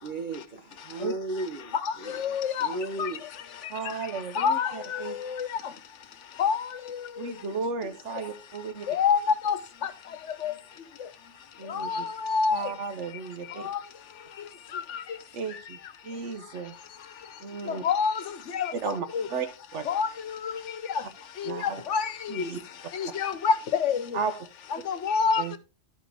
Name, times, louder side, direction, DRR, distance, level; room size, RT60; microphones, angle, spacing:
voice 1, 0.0-3.2, right 2 dB, 45° right, 1.0 m, -35 dB
voice 2, 2.2-2.7 3.0-3.1 4.4-4.7 5.4-5.5 6.4-6.6 8.9-9.2 9.4-9.6 10.4-10.5 11.7-12.6 13.6-13.8 17.8-18.1 18.5-18.7 19.1-19.2 19.9-20.1 21.9-22.0 22.4-22.5 23.0-24.0 24.9-25.4, left 6 dB, 80° left, 1.1 m, -25 dB
voice 3, 3.7-5.2 7.2-8.9 11.6-12.1 12.5-13.7 15.3-15.8 16.0-16.7 17.4-17.8 18.8-19.9 21.4-21.8 22.3-22.6 24.1-24.5 25.4-25.5, right 5 dB, 75° right, 1.2 m, -34 dB
11.5 x 5.0 x 3.4 m
omnidirectional pair, 1.2 m